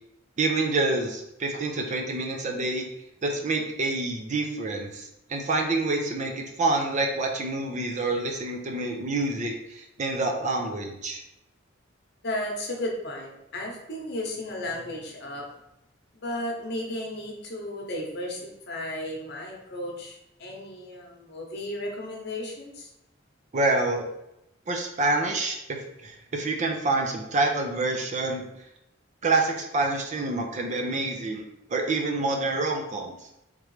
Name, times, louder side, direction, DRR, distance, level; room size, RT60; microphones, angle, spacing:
voice 1, 0.4-2.9 3.2-11.2 23.5-24.1 24.7-28.6 29.2-33.1, right 2 dB, 40° right, 2 dB, 0.5 m, -27 dB
voice 2, 12.2-15.5 16.1-22.9, left 1 dB, 55° left, -1 dB, 0.9 m, -34 dB
3.6 x 3.2 x 3.2 m, 0.85 s
head